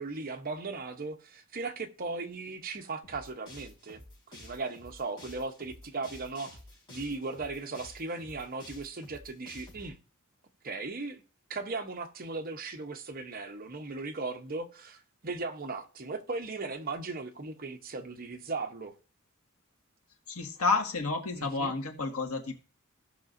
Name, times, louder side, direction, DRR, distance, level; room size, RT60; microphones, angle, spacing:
voice 1, 0.0-6.6 6.9-10.0 10.6-11.2 11.5-18.9 21.4-21.7, right 3 dB, 45° right, 0.9 m, -37 dB
sound 1, 3.0-9.9, left 1 dB, 20° left, 4.3 m, -50 dB
voice 2, 20.3-22.5, left 3 dB, 85° left, 1.7 m, -30 dB
16.5 x 5.8 x 2.6 m
head